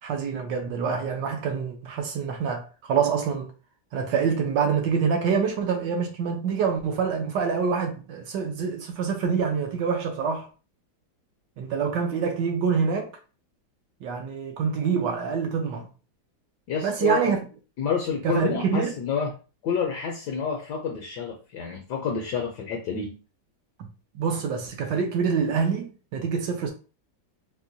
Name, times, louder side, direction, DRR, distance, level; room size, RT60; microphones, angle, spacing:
voice 1, 0.0-3.5 3.9-10.5 11.6-13.1 14.0-15.9 16.8-17.4 18.2-18.9 23.8-23.9 24.1-26.7, right 6 dB, 70° right, 1.2 m, -26 dB
voice 2, 16.7-17.3 17.8-19.3 19.6-23.2, left 6 dB, 70° left, 1.1 m, -29 dB
4.3 x 2.1 x 2.6 m
omnidirectional pair, 2.1 m